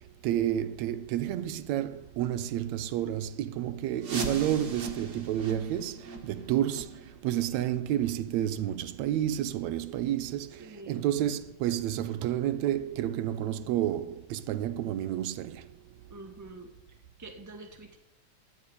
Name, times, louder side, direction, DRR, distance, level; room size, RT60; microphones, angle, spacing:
voice 1, 0.2-6.9 7.2-10.5 10.9-15.6, right 11 dB, 75° right, 1.8 m, -30 dB
sound 1, 4.0-9.6 9.9-10.0 10.6-10.7 11.3-11.4 11.9-12.0, right 3 dB, 40° right, 1.7 m, -40 dB
voice 2, 10.6-11.0 16.1-16.7 17.2-18.0, right 2 dB, 20° right, 0.4 m, -46 dB
12.5 x 10.5 x 9.8 m
omnidirectional pair, 3.6 m